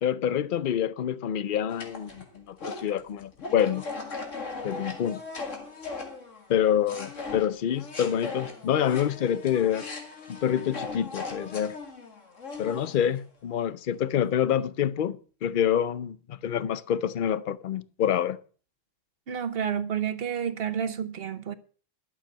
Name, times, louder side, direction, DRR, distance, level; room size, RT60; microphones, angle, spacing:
voice 1, 0.0-3.8 4.6-5.2 6.5-9.9 10.3-11.8 12.6-18.4, left 9 dB, 50° left, 0.7 m, -27 dB
sound 1, 1.7-6.6 6.9-13.2, left 3 dB, 80° left, 2.4 m, -38 dB
voice 2, 19.3-21.5, right 8 dB, 55° right, 1.1 m, -30 dB
12.0 x 7.5 x 6.6 m
omnidirectional pair, 1.3 m